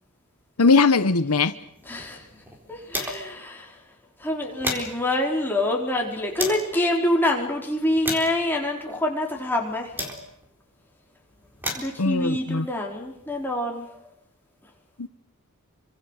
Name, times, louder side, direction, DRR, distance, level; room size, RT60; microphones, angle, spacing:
voice 1, 0.6-1.5 12.0-12.7 15.0-15.1, left 4 dB, 85° left, 12 dB, 1.0 m, -20 dB
sound 1, 1.6-3.4 3.8-3.9 4.2-6.7 7.4-10.6 11.3-13.5, equal, 10° right, 4.1 m, -36 dB
voice 2, 1.9-2.3 2.7-3.8 4.2-9.9 11.7-13.9, left 1 dB, 10° left, 0 dB, 4.4 m, -26 dB
28.5 x 25.5 x 6.5 m, 0.72 s
head